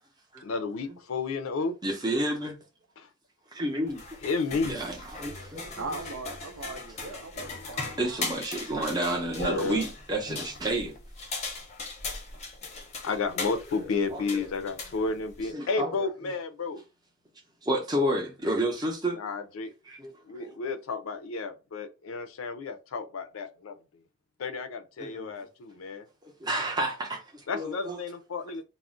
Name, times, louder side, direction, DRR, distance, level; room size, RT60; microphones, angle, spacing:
voice 1, 0.4-1.8 3.0-3.1 4.2-4.8 7.4-8.0 9.4-9.9 13.0-16.8 19.1-19.7 20.3-23.7 24.4-26.0 27.5-28.6, left 4 dB, 80° left, 0.4 m, -32 dB
voice 2, 1.8-2.6 3.5-4.0 4.6-5.8 8.0-11.0 13.4-14.5 15.5-15.9 17.6-19.2 19.9-20.1 20.4-20.6 25.0-25.3 26.4-28.0, right 1 dB, 20° right, 0.6 m, -30 dB
sound 1, 3.9-15.5, left 3 dB, 30° left, 0.6 m, -39 dB
voice 3, 5.8-8.2, right 3 dB, 80° right, 0.6 m, -39 dB
2.4 x 2.0 x 3.6 m
head